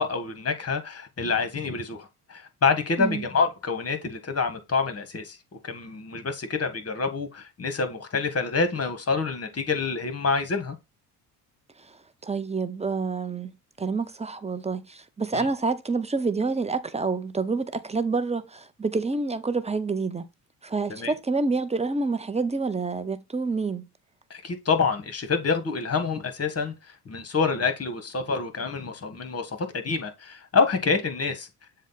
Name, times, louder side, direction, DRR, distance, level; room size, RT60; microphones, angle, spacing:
voice 1, 0.0-5.4 5.6-10.8 15.3-15.5 20.9-21.1 24.3-26.7 27.0-31.5, left 4 dB, 30° left, 1.5 m, -27 dB
voice 2, 12.2-13.5 13.8-20.2 20.6-23.8, right 4 dB, 15° right, 0.8 m, -28 dB
7.2 x 2.4 x 5.6 m
hypercardioid pair, 60°, 47 cm